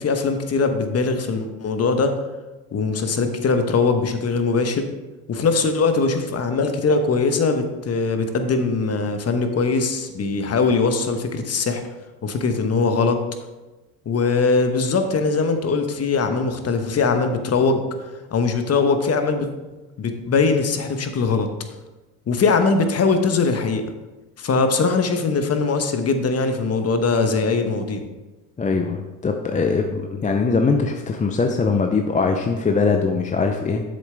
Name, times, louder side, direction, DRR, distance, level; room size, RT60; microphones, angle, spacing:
voice 1, 0.0-2.1 2.7-4.9 5.3-11.8 12.2-13.2 14.0-17.8 18.3-19.5 20.0-21.5 22.3-23.8 24.4-28.0, left 4 dB, 35° left, 7 dB, 1.0 m, -21 dB
voice 2, 28.6-33.8, left 4 dB, 15° left, 4 dB, 0.5 m, -21 dB
7.6 x 7.2 x 3.4 m, 1.1 s
hypercardioid pair, 80°, 46 cm